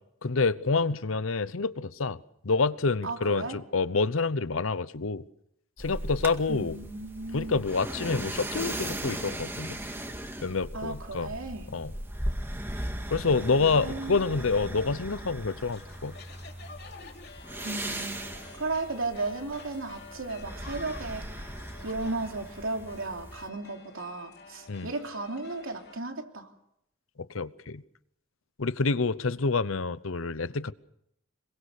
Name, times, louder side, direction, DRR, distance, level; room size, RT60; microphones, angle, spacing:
voice 1, 0.2-5.2 5.8-6.8 7.3-9.8 10.4-11.3 11.7-11.9 13.1-16.1 24.7-24.9 27.2-27.8 28.6-30.7, left 4 dB, 90° left, 0.9 m, -28 dB
voice 2, 3.0-3.6 6.5-7.6 10.7-11.7 13.5-14.2 17.6-18.3 18.6-21.4 21.8-26.5, right 3 dB, 85° right, 3.2 m, -35 dB
sound 1, 5.8-23.5, right 1 dB, 10° right, 2.0 m, -38 dB
sound 2, 15.4-26.0, left 4 dB, 55° left, 2.7 m, -49 dB
25.5 x 22.5 x 6.6 m
head